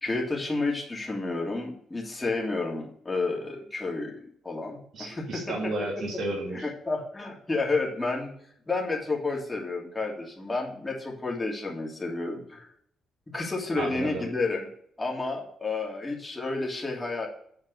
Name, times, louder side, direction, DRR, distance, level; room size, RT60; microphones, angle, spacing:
voice 1, 0.0-5.4 6.5-8.3 8.7-12.7 13.3-14.7 15.0-17.3, left 3 dB, 15° left, -2 dB, 2.8 m, -30 dB
voice 2, 4.9-6.7 13.8-14.2, right 2 dB, 65° right, -3 dB, 2.8 m, -32 dB
7.9 x 4.6 x 6.5 m, 0.63 s
cardioid pair, 90°, 0 cm